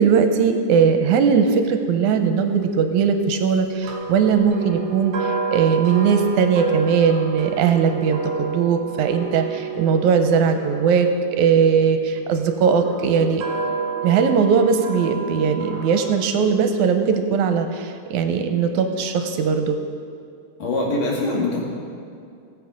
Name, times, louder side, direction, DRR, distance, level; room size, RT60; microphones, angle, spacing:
voice 1, 0.0-13.4 14.0-19.8, right 6 dB, 80° right, 6 dB, 2.1 m, -19 dB
sound 1, 3.8-12.0 12.7-16.2, right 5 dB, 40° right, 2.4 m, -30 dB
voice 2, 20.6-21.6, left 2 dB, 85° left, -2 dB, 3.7 m, -23 dB
17.5 x 7.8 x 5.0 m, 2.3 s
omnidirectional pair, 3.6 m